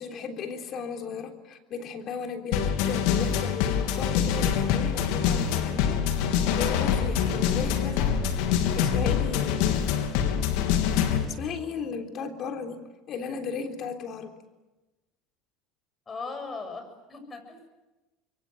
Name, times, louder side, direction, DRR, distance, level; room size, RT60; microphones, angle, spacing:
voice 1, 0.0-6.2 6.5-9.8 11.3-12.8 13.1-14.3, left 6 dB, 50° left, 5 dB, 3.5 m, -36 dB
sound 1, 2.5-11.2, left 8 dB, 70° left, 3.0 m, -25 dB
voice 2, 16.1-17.6, left 4 dB, 25° left, 7 dB, 7.5 m, -38 dB
26.5 x 23.0 x 7.9 m, 1.1 s
supercardioid pair, 95°, 0 cm